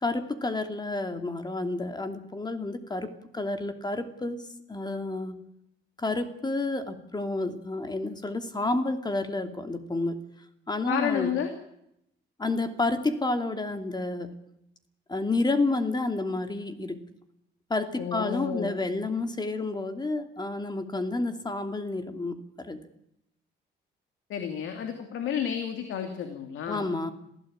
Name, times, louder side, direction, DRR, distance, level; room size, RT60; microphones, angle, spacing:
voice 1, 0.0-5.4 6.0-10.2 10.7-11.3 12.4-14.3 15.1-17.0 17.7-22.8 26.7-27.1, left 2 dB, 20° left, 7 dB, 2.7 m, -30 dB
voice 2, 10.9-11.5 18.0-18.8 24.3-26.9, left 8 dB, 80° left, 6 dB, 2.8 m, -31 dB
27.0 x 16.5 x 8.9 m, 0.79 s
cardioid pair, 90°, 20 cm